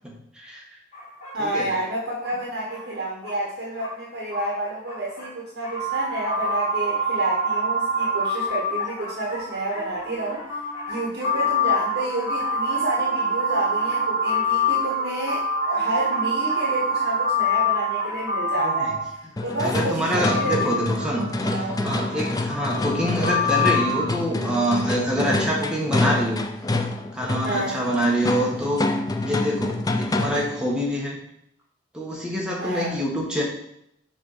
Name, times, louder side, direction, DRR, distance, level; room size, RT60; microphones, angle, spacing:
voice 1, 0.0-0.6 1.4-1.7 18.6-18.9 19.6-26.5 27.1-31.2 31.9-33.4, equal, 5° right, -3 dB, 1.3 m, -26 dB
sound 1, 0.9-18.8, left 1 dB, 35° left, 2.1 m, -41 dB
voice 2, 1.3-10.4 10.9-19.0 19.4-20.7 21.4-21.8 27.4-27.8 32.6-33.0, right 1 dB, 60° right, -5 dB, 1.4 m, -30 dB
sound 2, 5.7-19.6 20.2-24.1, left 1 dB, 70° left, 2.0 m, -25 dB
sound 3, 19.4-30.6, left 2 dB, 20° left, 0.4 m, -27 dB
6.3 x 3.6 x 5.6 m, 0.75 s
head